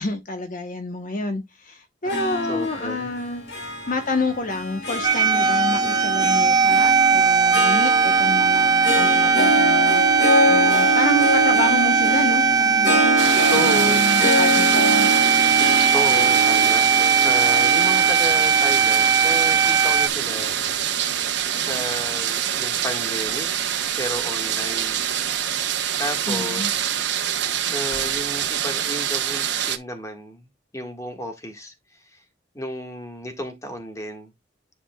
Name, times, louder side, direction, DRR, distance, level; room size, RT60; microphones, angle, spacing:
voice 1, 0.0-3.4 3.9-13.2 13.5-15.1 26.3-26.7, left 2 dB, 50° left, 1.0 m, -28 dB
Harp, 2.0-20.5, equal, 75° left, 2.6 m, -25 dB
voice 2, 2.5-3.1 13.5-14.0 15.9-16.9 17.2-20.5 21.5-23.5 24.0-25.0 26.0-27.1 27.6-30.5 30.7-31.7 32.1-32.2 32.5-34.3, equal, 20° left, 1.7 m, -32 dB
sound 1, 5.0-20.1, right 6 dB, 25° right, 0.5 m, -19 dB
sound 2, 13.2-29.8, right 9 dB, 85° right, 1.0 m, -25 dB
10.5 x 5.1 x 2.3 m
head